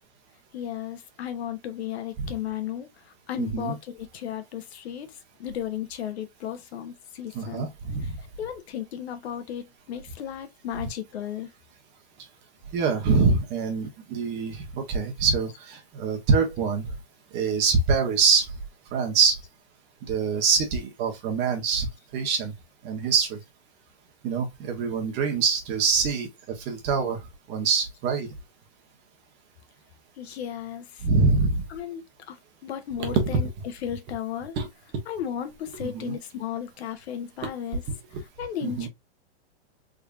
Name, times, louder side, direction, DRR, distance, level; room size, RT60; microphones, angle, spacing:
voice 1, 0.5-2.9 3.3-7.7 8.0-8.1 8.4-11.5 30.2-31.0 31.7-32.4 32.6-34.5 35.1-37.8 38.1-38.9, left 10 dB, 75° left, 1.0 m, -35 dB
voice 2, 3.4-3.8 7.3-8.2 12.7-16.8 17.3-18.5 18.9-19.4 20.0-21.9 22.1-22.5 22.8-23.4 24.2-27.2 27.5-28.3 31.0-31.6 33.0-33.4 34.6-34.7 35.8-36.2 38.6-38.9, right 5 dB, 35° right, 1.3 m, -24 dB
3.7 x 3.2 x 2.5 m
supercardioid pair, 145°, 33 cm